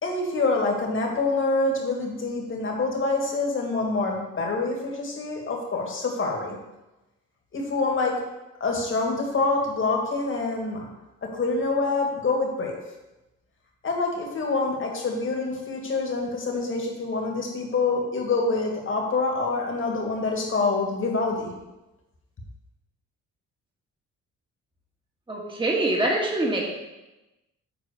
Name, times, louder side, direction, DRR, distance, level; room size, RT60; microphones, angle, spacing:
voice 1, 0.0-6.6 7.5-8.2 8.6-10.9 11.2-12.8 13.8-21.5, left 3 dB, 40° left, 0 dB, 2.3 m, -26 dB
voice 2, 25.3-26.6, right 1 dB, 15° right, -2 dB, 1.9 m, -24 dB
8.1 x 4.3 x 6.8 m, 1.0 s
cardioid pair, 90°, 30 cm